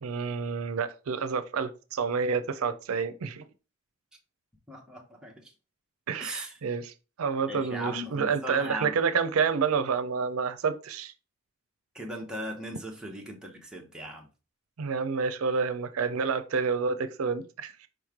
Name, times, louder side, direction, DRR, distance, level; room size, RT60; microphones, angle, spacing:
voice 1, 0.0-3.4 6.1-11.1 14.8-17.9, right 5 dB, 90° right, 0.5 m, -29 dB
voice 2, 4.7-5.5 6.2-6.6 7.5-9.0 11.9-14.3, equal, 5° right, 0.8 m, -38 dB
4.8 x 3.1 x 3.6 m
head